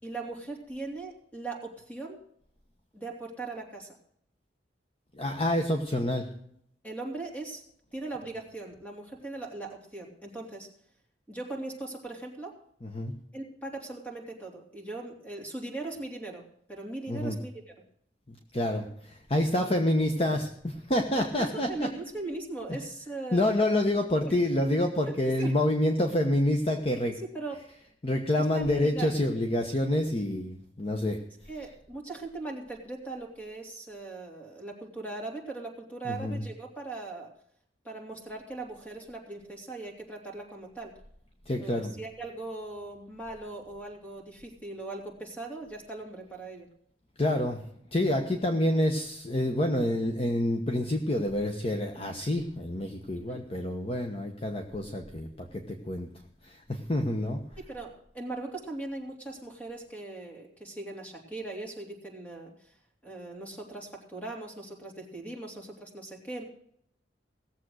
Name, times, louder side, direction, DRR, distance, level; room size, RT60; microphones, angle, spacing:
voice 1, 0.0-2.2 2.9-3.9 6.8-7.6 7.9-10.7 11.3-12.6 13.3-17.7 21.4-23.7 24.3-24.4 25.1-25.6 27.1-27.7 28.5-29.1 31.5-37.3 37.8-40.9 41.6-46.7 53.1-53.4 57.6-62.8 63.0-66.4, right 2 dB, 10° left, 1 dB, 3.2 m, -39 dB
voice 2, 5.1-6.3 12.8-13.1 17.1-17.4 18.3-21.9 23.3-27.1 28.0-31.2 36.0-36.4 41.5-41.9 47.2-47.6 47.9-56.1 56.4-57.4, left 1 dB, 35° left, 4 dB, 1.1 m, -28 dB
17.5 x 7.5 x 6.4 m, 0.68 s
head